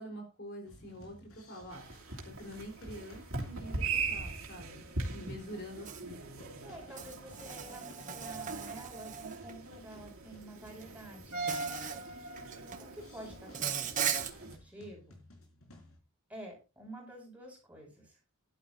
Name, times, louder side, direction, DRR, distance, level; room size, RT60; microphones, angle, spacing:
voice 1, 0.0-1.8 2.4-6.2, equal, 50° left, 2 dB, 4.2 m, -46 dB
sound 1, 0.6-16.0, left 1 dB, 85° left, 5.0 m, -57 dB
sound 2, 1.7-14.6, right 3 dB, 85° right, 3.0 m, -41 dB
Insect, 5.9-6.0 7.0-9.5 10.7-10.8 11.5-12.0 12.4-12.8 13.5-14.3, right 8 dB, 35° right, 1.3 m, -37 dB
voice 2, 6.6-11.8 12.2-12.3 12.8-15.2 16.3-18.2, right 1 dB, 5° right, -1 dB, 6.3 m, -49 dB
16.0 x 11.5 x 2.7 m, 0.30 s
head